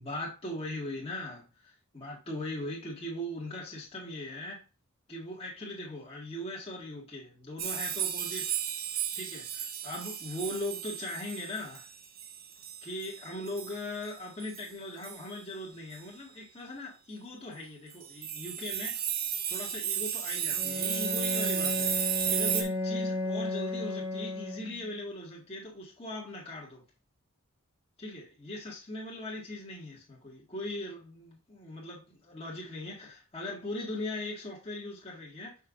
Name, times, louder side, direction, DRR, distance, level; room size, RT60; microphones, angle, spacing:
voice 1, 0.0-4.6 5.1-8.6 9.2-11.9 12.8-19.0 19.5-26.8 28.0-35.6, left 1 dB, 25° left, 1.9 m, -39 dB
sound 1, 7.6-13.8 14.0-14.1 14.4-14.6 15.0-15.2 15.9-16.0 17.9-22.6, right 9 dB, 45° right, 0.9 m, -34 dB
Bowed string instrument, 20.5-25.0, left 1 dB, 10° right, 1.0 m, -34 dB
6.5 x 5.6 x 2.6 m
head